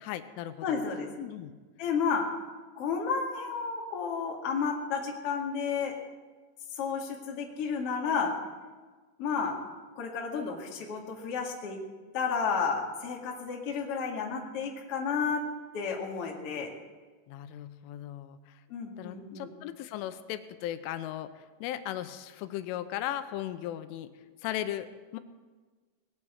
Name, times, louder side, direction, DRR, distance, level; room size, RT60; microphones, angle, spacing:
voice 1, 0.0-0.8 1.2-1.5 17.3-18.6 19.0-24.1 24.4-25.2, left 12 dB, 85° left, 11 dB, 3.2 m, -37 dB
voice 2, 0.6-1.1 1.8-2.3 2.8-5.9 6.7-8.3 9.2-9.6 9.9-11.8 12.1-15.4 15.7-16.7 18.7-19.5, left 5 dB, 45° left, -1 dB, 2.0 m, -31 dB
19.5 x 8.9 x 7.9 m, 1.4 s
omnidirectional pair, 5.6 m